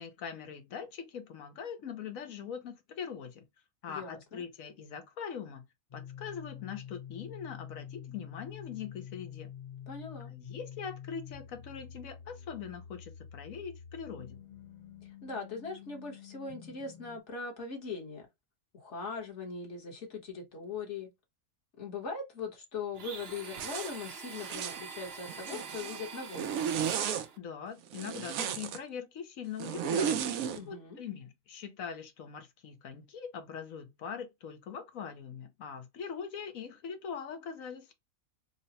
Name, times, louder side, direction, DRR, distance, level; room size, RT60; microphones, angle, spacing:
voice 1, 0.0-3.4 3.8-5.6 5.9-9.5 10.3-14.4 27.4-37.9, left 7 dB, 70° left, 1.2 m, -42 dB
voice 2, 3.9-4.4 9.9-10.3 15.0-18.3 18.7-21.1 21.8-26.5 30.5-31.0, left 4 dB, 55° left, 1.5 m, -40 dB
sound 1, 5.9-17.2, left 9 dB, 40° left, 0.7 m, -47 dB
Domestic sounds home sounds, 22.9-27.4, right 5 dB, 50° right, 0.9 m, -45 dB
Zipper (clothing), 23.6-23.9 24.4-24.8 25.3-26.0 26.3-27.3 27.9-28.8 29.6-30.6, right 8 dB, 75° right, 1.0 m, -33 dB
3.8 x 2.1 x 4.0 m
omnidirectional pair, 1.5 m